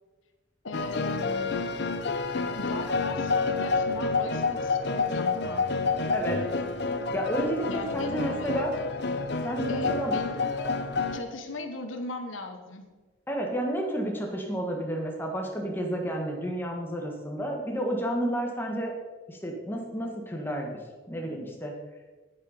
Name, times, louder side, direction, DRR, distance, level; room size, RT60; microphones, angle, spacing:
voice 1, 0.6-1.7 2.6-5.7 7.7-8.6 9.7-10.7 11.1-12.9, left 2 dB, 90° left, 6 dB, 1.2 m, -38 dB
sound 1, 0.7-11.2, left 4 dB, 60° left, 0.8 m, -29 dB
voice 2, 6.1-6.4 7.1-8.7 9.4-10.1 13.3-18.9 19.3-20.7 21.1-21.7, right 1 dB, 10° left, 0 dB, 1.6 m, -31 dB
9.7 x 9.1 x 5.1 m, 1.3 s
head